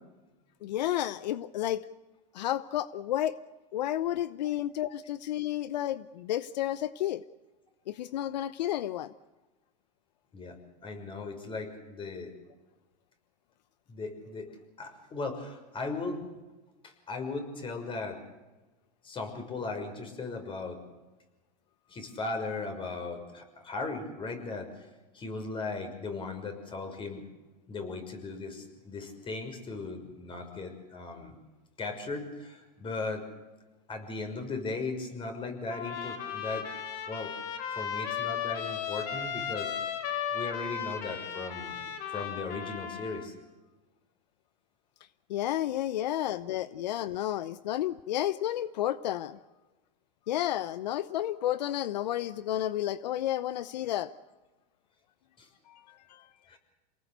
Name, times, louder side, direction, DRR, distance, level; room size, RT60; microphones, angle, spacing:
voice 1, 0.6-1.9 2.3-3.4 3.7-7.2 7.9-9.1 45.3-49.4 50.3-54.1 55.7-55.8 56.1-56.2, left 12 dB, 80° left, 16 dB, 0.9 m, -31 dB
voice 2, 10.8-12.3 13.9-14.5 14.8-16.3 16.8-18.2 19.0-20.8 21.9-24.8 25.1-27.2 27.7-31.4 31.8-33.2 33.9-36.7 37.1-37.3 37.8-39.7 40.3-41.8 42.1-43.3 55.4-55.5 56.5-56.6, left 3 dB, 25° left, 6 dB, 6.1 m, -37 dB
Trumpet, 35.7-43.3, left 8 dB, 60° left, 4.2 m, -35 dB
28.5 x 19.0 x 8.2 m, 1.1 s
supercardioid pair, 125°, 21 cm